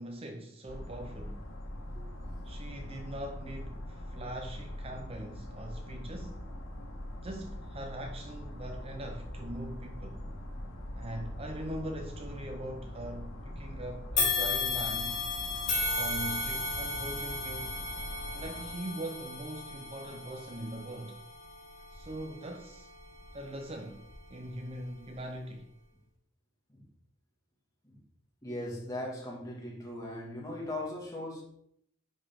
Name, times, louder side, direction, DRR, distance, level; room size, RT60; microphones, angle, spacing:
voice 1, 0.0-1.5 2.4-6.5 7.2-10.2 11.0-15.2 16.0-17.8 18.3-21.2 21.9-22.9 23.3-25.7, right 1 dB, 30° right, 0.7 m, -41 dB
sound 1, 0.7-18.8, left 1 dB, 85° left, 1.6 m, -42 dB
sound 2, 14.2-23.5 24.0-24.2 25.1-25.2, left 4 dB, 40° left, 2.0 m, -35 dB
voice 2, 28.4-31.4, left 1 dB, 15° left, 2.1 m, -39 dB
9.8 x 5.2 x 3.7 m
head